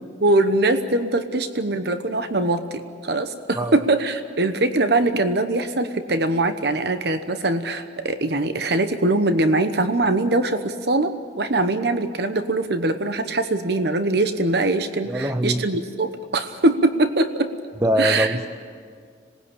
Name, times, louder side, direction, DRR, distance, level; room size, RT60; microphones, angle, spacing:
voice 1, 0.2-17.5 18.0-18.4, right 2 dB, 65° right, 9 dB, 1.0 m, -22 dB
voice 2, 15.1-15.6 17.8-18.5, equal, 15° right, 8 dB, 0.7 m, -22 dB
26.0 x 19.5 x 8.6 m, 2.1 s
head